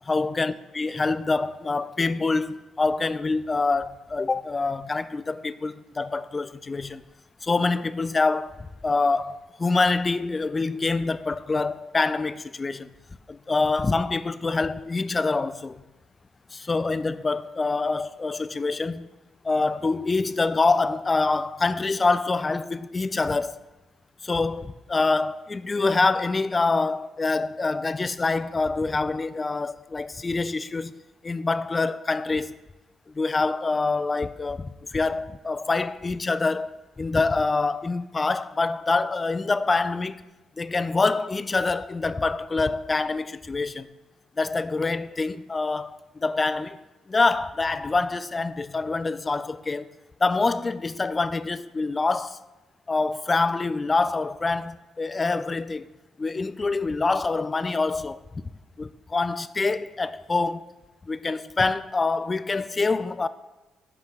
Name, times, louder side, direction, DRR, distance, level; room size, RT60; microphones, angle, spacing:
voice 1, 0.1-7.0 7.4-12.9 13.3-15.8 16.5-19.1 19.4-23.6 24.2-30.9 31.2-32.6 33.1-40.2 40.6-43.9 44.4-46.8 47.1-49.9 50.2-52.4 52.9-55.9 56.2-58.2 58.8-60.7 61.1-63.3, left 3 dB, 25° left, 0.3 m, -25 dB
6.0 x 4.9 x 5.6 m
cardioid pair, 90°, 0 cm